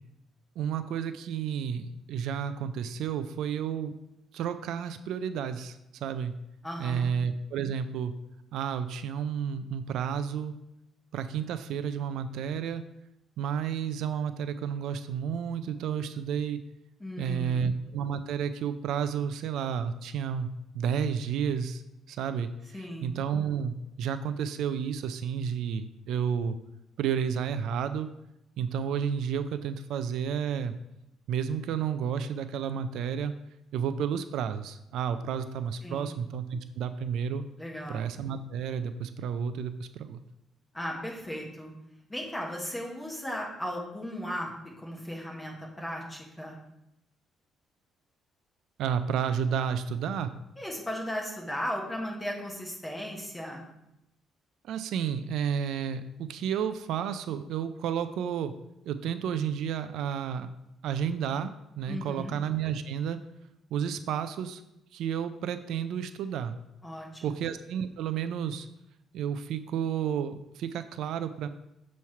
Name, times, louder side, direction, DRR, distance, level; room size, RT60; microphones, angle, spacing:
voice 1, 0.6-3.9 4.3-6.3 6.8-8.1 8.5-10.5 11.1-12.8 13.4-16.6 17.2-21.8 22.1-22.5 22.8-26.6 27.0-28.1 28.6-30.7 31.3-33.3 33.7-37.4 37.9-40.2 48.8-50.3 54.6-58.5 58.9-60.5 60.8-63.2 63.7-64.6 64.9-66.6 67.2-68.7 69.1-71.5, right 7 dB, 75° right, 10 dB, 0.4 m, -31 dB
voice 2, 6.6-7.1 17.0-17.7 22.7-23.1 35.8-36.1 37.6-38.0 40.7-41.7 42.1-44.5 44.8-46.5 50.6-53.6 61.9-62.4 66.8-67.4, equal, 10° left, -1 dB, 1.3 m, -36 dB
7.0 x 3.1 x 5.6 m, 0.86 s
cardioid pair, 145°, 0 cm